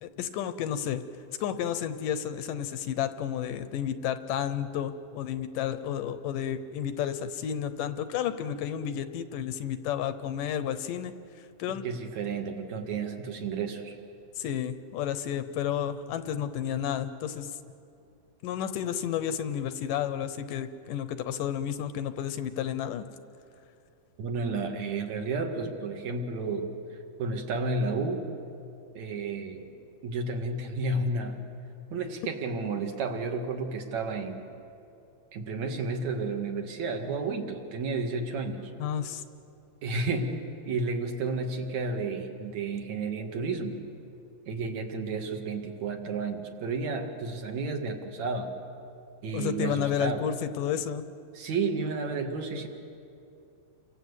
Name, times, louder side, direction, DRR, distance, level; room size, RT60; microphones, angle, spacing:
voice 1, 0.0-1.0 1.4-11.1 11.6-11.8 14.4-17.6 18.4-23.1 38.8-39.2 49.3-51.0, left 9 dB, 75° left, 11 dB, 2.1 m, -31 dB
voice 2, 11.7-13.9 24.2-26.7 27.2-28.3 28.9-29.7 30.0-31.4 31.9-34.4 35.3-38.7 39.8-40.4 40.6-43.8 44.5-48.5 49.2-50.3 51.3-52.7, right 3 dB, 55° right, 4 dB, 2.9 m, -32 dB
29.5 x 24.5 x 8.2 m, 2.6 s
omnidirectional pair, 4.4 m